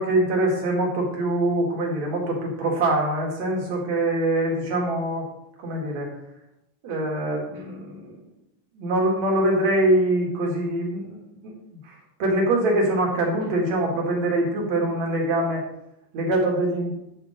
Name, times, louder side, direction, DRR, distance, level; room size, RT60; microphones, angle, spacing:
voice 1, 0.0-5.3 5.6-6.1 6.8-8.2 8.7-11.2 11.4-15.6 16.1-16.9, right 1 dB, 55° right, -1 dB, 3.3 m, -24 dB
9.9 x 7.5 x 5.3 m, 0.84 s
omnidirectional pair, 3.9 m